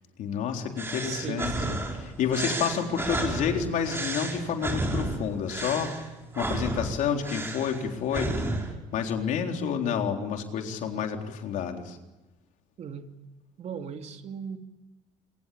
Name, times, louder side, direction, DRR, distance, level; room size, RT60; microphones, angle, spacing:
voice 1, 0.2-1.8 2.2-5.9 6.4-8.4 8.9-12.0, left 7 dB, 65° left, 4 dB, 3.9 m, -29 dB
sound 1, 0.8-8.7, right 2 dB, 15° right, 5.7 m, -32 dB
voice 2, 1.0-1.8 12.8-13.1 13.6-14.6, right 7 dB, 50° right, 6 dB, 2.6 m, -37 dB
27.0 x 23.5 x 8.5 m, 1.1 s
cardioid pair, 100°, 14 cm